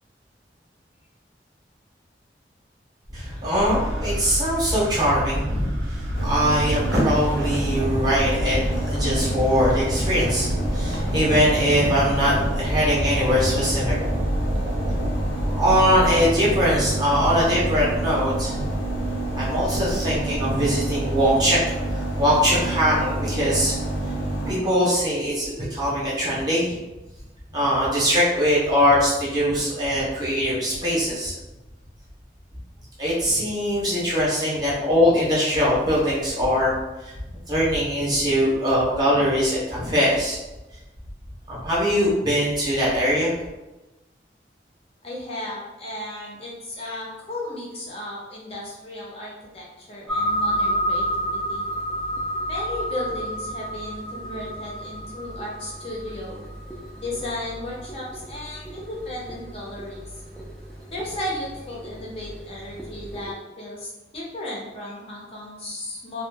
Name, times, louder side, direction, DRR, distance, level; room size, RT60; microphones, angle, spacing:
voice 1, 3.1-14.2 15.5-18.5 19.3-21.6 21.9-23.7 24.4-26.8 27.5-31.3 33.0-36.7 37.0-37.2 37.5-40.4 41.5-43.3, equal, 25° right, -7 dB, 0.7 m, -22 dB
sound 1, 3.6-21.3, equal, 85° right, 0.4 m, -30 dB
sound 2, 6.1-24.5, right 1 dB, 80° left, 0.6 m, -28 dB
voice 2, 45.0-51.6 52.5-56.5 56.9-60.1 60.9-66.2, left 1 dB, 35° left, -4 dB, 0.7 m, -35 dB
sound 3, 50.1-63.3, equal, 5° left, 0.3 m, -31 dB
2.5 x 2.0 x 3.3 m, 1.0 s
head